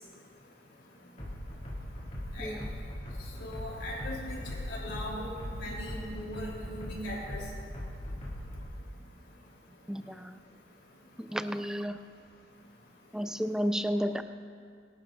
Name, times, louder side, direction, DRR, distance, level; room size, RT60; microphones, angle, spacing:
sound 1, 1.2-8.7, equal, 40° left, 2.8 m, -40 dB
voice 1, 2.4-2.7 9.9-10.4 11.2-12.0 13.1-14.2, equal, 5° right, 10 dB, 0.3 m, -32 dB
voice 2, 3.4-7.4, left 1 dB, 90° left, -3 dB, 3.6 m, -39 dB
24.0 x 12.0 x 2.6 m, 2.3 s
head